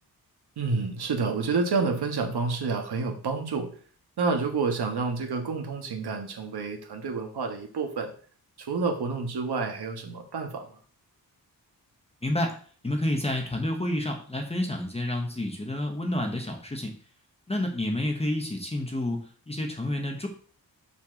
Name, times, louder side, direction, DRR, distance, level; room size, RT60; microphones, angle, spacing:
voice 1, 0.6-3.7 4.2-8.1 8.6-10.8, right 4 dB, 90° right, 4 dB, 1.6 m, -29 dB
voice 2, 12.2-12.6 12.8-16.9 17.5-20.3, left 1 dB, 15° left, 2 dB, 1.1 m, -29 dB
5.9 x 4.4 x 6.3 m, 0.44 s
wide cardioid pair, 155°, 38 cm